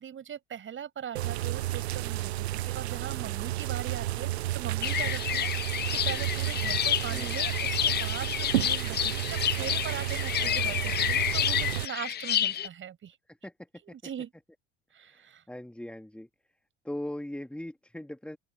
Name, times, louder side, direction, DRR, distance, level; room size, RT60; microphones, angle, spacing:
voice 1, 0.0-13.2 13.8-14.3 14.9-15.4, right 9 dB, 35° right, 6.2 m, -40 dB
sound 1, 1.1-11.9, right 15 dB, 75° right, 0.6 m, -32 dB
sound 2, 4.8-12.7, left 11 dB, 30° left, 0.8 m, -29 dB
voice 2, 15.0-16.3 16.8-18.4, left 1 dB, 5° left, 3.0 m, -39 dB
open air
figure-of-eight pair, 65°, 33 cm